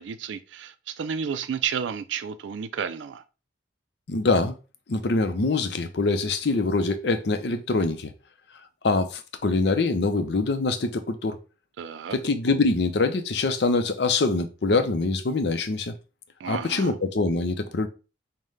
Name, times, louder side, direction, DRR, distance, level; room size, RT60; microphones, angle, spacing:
voice 1, 0.0-3.2 11.8-12.2 16.4-16.9, right 7 dB, 80° right, 0.3 m, -31 dB
voice 2, 4.1-4.6 4.9-8.1 8.8-11.4 12.1-15.9 16.5-17.9, left 3 dB, 65° left, 0.6 m, -24 dB
5.5 x 2.1 x 3.2 m
head